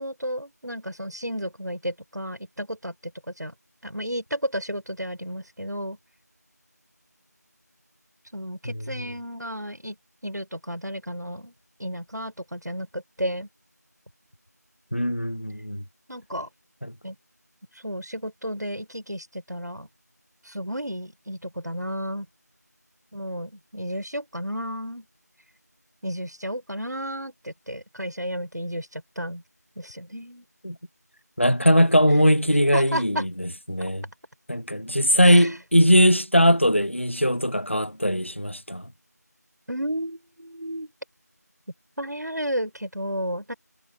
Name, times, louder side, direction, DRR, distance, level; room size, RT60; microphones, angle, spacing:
voice 1, 0.0-2.9 3.4-3.5 3.8-6.0 8.3-10.0 10.2-11.5 11.8-13.5 16.1-16.5 17.0-17.2 17.8-19.9 20.5-22.3 23.1-25.1 26.0-29.4 29.8-30.5 32.7-33.3 33.8-33.9 35.2-35.5 39.7-40.9 42.0-43.5, equal, 75° right, 7.1 m, -32 dB
voice 2, 14.9-15.8 16.8-16.9 30.6-30.8 31.4-34.0 34.5-38.9, equal, 45° left, 0.7 m, -20 dB
figure-of-eight pair, 180°, 9 cm